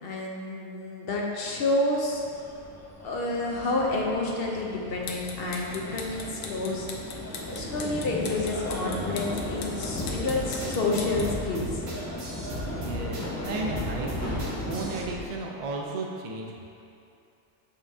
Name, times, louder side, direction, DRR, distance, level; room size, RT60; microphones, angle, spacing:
voice 1, 0.0-2.2 3.0-6.9 7.4-11.8, left 2 dB, 50° left, -1 dB, 0.9 m, -29 dB
sound 1, 2.0-15.3, left 1 dB, 25° left, 0.3 m, -36 dB
sound 2, 4.9-11.4, left 4 dB, 85° left, 1.1 m, -41 dB
sound 3, 10.0-15.0, equal, 70° right, 1.6 m, -36 dB
voice 2, 12.7-16.7, right 2 dB, 45° right, -1 dB, 0.5 m, -34 dB
7.2 x 5.7 x 2.7 m, 2.7 s
omnidirectional pair, 1.4 m